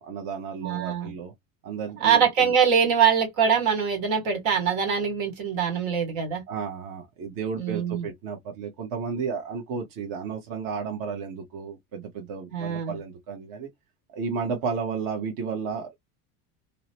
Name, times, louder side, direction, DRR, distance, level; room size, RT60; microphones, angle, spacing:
voice 1, 0.0-1.3 1.6-2.5 6.5-13.7 14.1-16.0, right 5 dB, 50° right, 0.9 m, -33 dB
voice 2, 0.6-1.1 2.0-6.4 7.6-8.0 12.5-12.9, right 7 dB, 80° right, 1.7 m, -23 dB
2.8 x 2.0 x 2.8 m
supercardioid pair, 105°, 42 cm